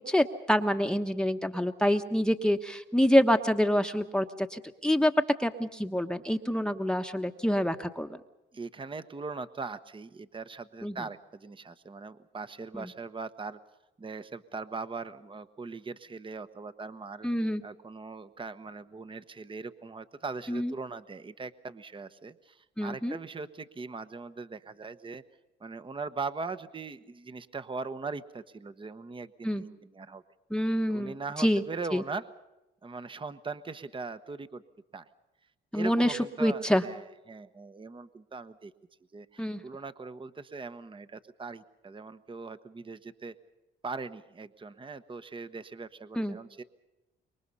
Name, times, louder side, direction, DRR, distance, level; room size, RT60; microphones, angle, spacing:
voice 1, 0.0-5.1 5.4-8.1 10.8-10.9 12.7-12.9 17.2-17.6 20.5-20.7 22.8-23.2 29.4-29.6 30.5-31.6 31.9-32.0 35.7-36.8 39.4-39.6 46.2-46.4, equal, 5° left, 7 dB, 1.2 m, -27 dB
voice 2, 8.5-13.6 14.0-17.3 17.6-25.2 25.6-30.2 30.9-32.2 32.8-34.6 34.9-35.1 35.7-38.7 39.1-43.3 43.8-46.6, right 4 dB, 25° right, 12 dB, 1.1 m, -40 dB
26.5 x 23.0 x 5.6 m, 0.98 s
cardioid pair, 90°, 20 cm